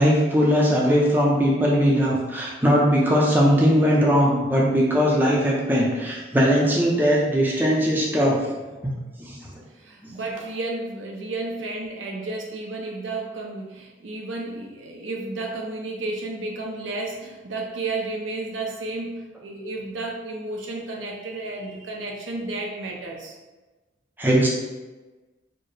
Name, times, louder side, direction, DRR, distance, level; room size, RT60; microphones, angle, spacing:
voice 1, 0.0-8.4 8.8-8.9 9.2-9.4 24.2-24.5, equal, 10° right, -4 dB, 0.5 m, -19 dB
voice 2, 9.7-23.3, right 2 dB, 75° right, 0 dB, 0.6 m, -32 dB
4.3 x 2.0 x 3.2 m, 1.2 s
head